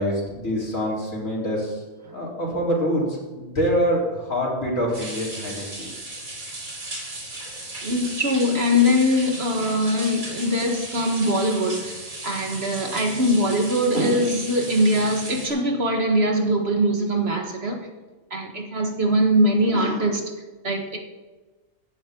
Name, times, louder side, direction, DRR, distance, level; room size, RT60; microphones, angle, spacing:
voice 1, 0.0-1.8 2.1-5.9, equal, 65° left, 4.6 m, -25 dB
sound 1, 4.9-15.5, right 2 dB, 70° right, 3.8 m, -36 dB
voice 2, 7.8-17.9 18.3-20.3 20.6-21.0, equal, 45° right, 1.7 m, -22 dB
16.0 x 12.0 x 3.9 m
omnidirectional pair, 1.5 m